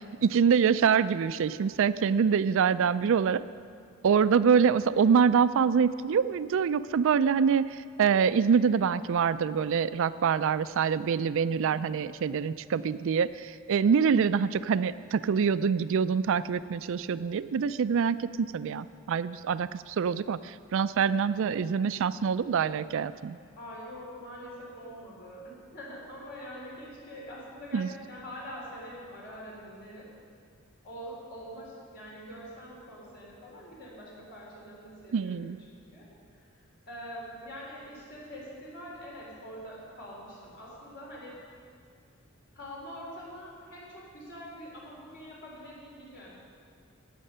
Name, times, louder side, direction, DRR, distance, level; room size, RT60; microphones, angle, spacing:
voice 1, 0.0-3.4 4.0-23.4 27.7-27.9 35.1-35.6, right 6 dB, 65° right, 15 dB, 0.4 m, -25 dB
voice 2, 11.3-11.7 23.6-30.1 30.8-36.5 36.9-41.4 42.5-46.3, equal, 55° left, -4 dB, 4.0 m, -44 dB
14.0 x 8.9 x 5.6 m, 2.2 s
head